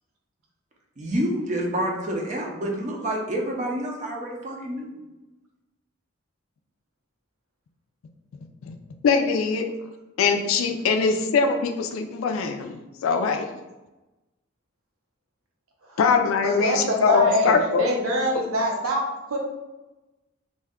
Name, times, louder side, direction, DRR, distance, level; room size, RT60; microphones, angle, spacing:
voice 1, 1.0-5.0, right 1 dB, 35° right, 0 dB, 0.5 m, -28 dB
voice 2, 9.0-9.6 10.2-12.8 13.0-13.5 16.0-17.8, left 5 dB, 80° left, 6 dB, 0.3 m, -22 dB
voice 3, 16.4-19.4, equal, 85° right, -1 dB, 0.7 m, -25 dB
2.6 x 2.2 x 3.5 m, 1.1 s
head